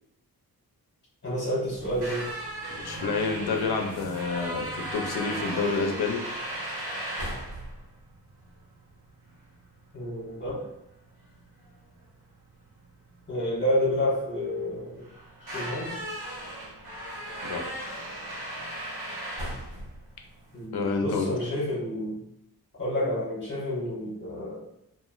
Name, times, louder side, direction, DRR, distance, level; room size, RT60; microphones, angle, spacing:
voice 1, 1.2-2.3 9.9-10.7 13.3-15.1 15.5-16.0 20.5-22.2 22.8-24.6, left 1 dB, 30° left, -7 dB, 1.3 m, -29 dB
squeaky door, 1.7-20.6, right 1 dB, 80° right, 1.0 m, -37 dB
voice 2, 2.8-6.2 17.4-17.6 20.7-21.3, left 4 dB, 80° left, 3 dB, 0.5 m, -28 dB
2.9 x 2.4 x 2.3 m, 0.78 s
wide cardioid pair, 170°, 37 cm